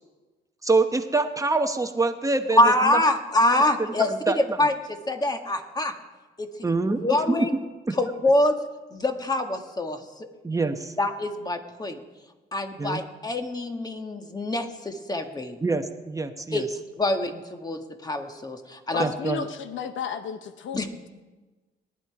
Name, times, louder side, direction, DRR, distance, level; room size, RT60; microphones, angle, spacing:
voice 1, 0.6-2.6 4.3-4.4 6.6-7.0 7.3-7.4 7.9-8.0 10.4-10.9 12.8-13.0 15.6-16.7 19.0-19.5, right 3 dB, 15° right, 7 dB, 1.0 m, -25 dB
voice 2, 2.5-5.9 6.4-6.5 7.0-7.5 7.9-8.5 8.9-10.3 11.0-12.0 12.5-15.6 16.5-16.7 17.0-19.1 20.7-20.9, left 1 dB, 20° left, 5 dB, 1.6 m, -25 dB
voice 3, 18.9-20.8, left 7 dB, 75° left, 10 dB, 0.9 m, -33 dB
18.5 x 11.0 x 4.8 m, 1.2 s
cardioid pair, 90°, 20 cm